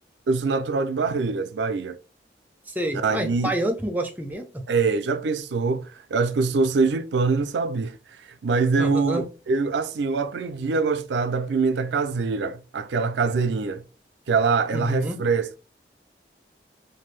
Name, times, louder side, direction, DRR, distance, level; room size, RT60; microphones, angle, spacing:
voice 1, 0.3-2.0 2.9-3.5 4.7-7.9 8.4-13.8 14.3-15.6, right 4 dB, 85° right, 0.4 m, -24 dB
voice 2, 2.8-4.6 8.8-9.2 14.7-15.2, right 1 dB, 10° right, 0.5 m, -28 dB
2.6 x 2.6 x 3.2 m
head